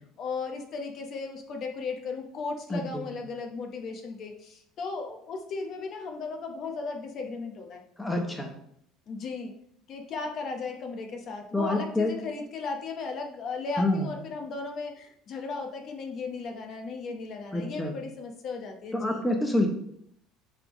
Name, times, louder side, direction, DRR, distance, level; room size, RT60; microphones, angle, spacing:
voice 1, 0.2-7.8 9.1-9.5 9.9-19.2, left 4 dB, 40° left, 3 dB, 0.9 m, -36 dB
voice 2, 2.7-3.0 8.0-8.5 11.5-12.1 13.8-14.1 17.5-17.9 18.9-19.7, left 1 dB, 5° left, 2 dB, 0.9 m, -27 dB
10.5 x 3.6 x 3.1 m, 0.72 s
cardioid pair, 145°, 0 cm